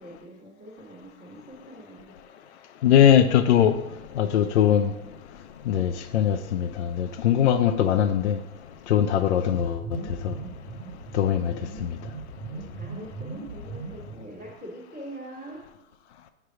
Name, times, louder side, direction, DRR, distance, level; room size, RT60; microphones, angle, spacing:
voice 1, 0.0-2.1 12.5-15.6, right 1 dB, 5° right, 0.3 m, -43 dB
voice 2, 2.8-3.8 4.2-4.9 5.7-8.4 8.9-9.8 10.2-10.3 11.1-11.5, left 10 dB, 55° left, 0.5 m, -21 dB
sound 1, 9.5-14.5, right 4 dB, 30° right, 0.8 m, -39 dB
9.1 x 3.3 x 4.8 m
hypercardioid pair, 145°, 43 cm